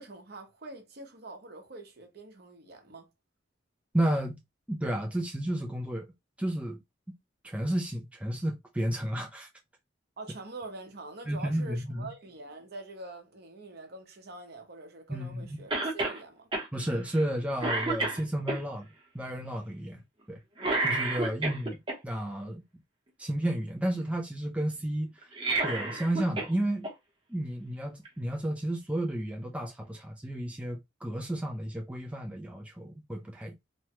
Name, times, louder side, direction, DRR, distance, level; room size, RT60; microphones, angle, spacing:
voice 1, 0.0-3.1 10.2-16.5, right 2 dB, 55° right, 0.9 m, -45 dB
voice 2, 3.9-4.4 4.7-6.1 6.4-6.8 7.4-9.5 11.3-12.1 15.1-15.6 16.7-18.9 19.1-20.0 20.3-20.4 20.8-22.6 23.2-25.3 25.6-26.9 27.3-33.5, right 1 dB, 5° right, 0.4 m, -32 dB
Cough, 15.7-16.2 16.5-16.7 17.1-17.3 17.6-18.6 20.6-22.0 25.2-26.5 26.8-26.9 28.0-28.1, right 2 dB, 30° right, 0.9 m, -30 dB
3.1 x 2.2 x 2.9 m
head